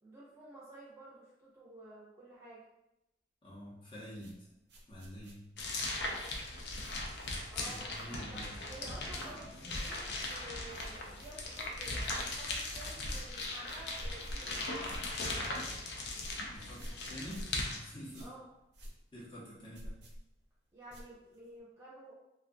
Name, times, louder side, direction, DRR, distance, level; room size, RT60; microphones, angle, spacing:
voice 1, 0.0-2.6 7.5-7.9 8.3-14.9 18.2-18.4 20.7-22.1, right 1 dB, 15° right, -7 dB, 0.6 m, -52 dB
voice 2, 3.4-4.5 4.9-5.5 7.6-9.7 16.4-17.5 17.7-18.3 19.1-19.9, equal, 30° left, -8 dB, 0.7 m, -48 dB
sound 1, 4.2-8.5 8.8-9.4 9.6-21.6, equal, 65° right, 0.5 m, -50 dB
sound 2, 5.6-17.8, left 2 dB, 60° left, 0.4 m, -39 dB
2.3 x 2.3 x 2.6 m, 0.88 s
head